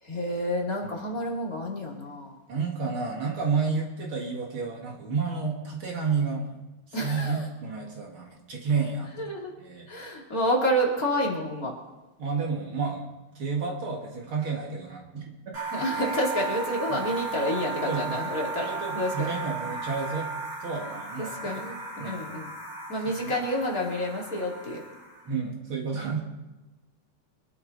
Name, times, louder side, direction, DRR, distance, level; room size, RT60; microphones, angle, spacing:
voice 1, 0.0-2.3 6.9-7.4 9.2-9.5 9.9-11.7 15.7-19.3 21.2-22.5 22.9-24.8, equal, 35° left, -3 dB, 1.5 m, -29 dB
voice 2, 0.8-1.1 2.5-6.6 7.0-9.3 9.6-9.9 12.2-13.1 13.3-15.6 16.9-17.0 17.9-20.3 20.6-21.5 22.0-22.3 23.1-23.3 25.2-26.2, right 5 dB, 85° right, -1 dB, 1.1 m, -31 dB
sound 1, 15.5-25.3, right 3 dB, 35° right, 6.0 m, -35 dB
25.0 x 12.0 x 4.1 m, 1.1 s
omnidirectional pair, 5.5 m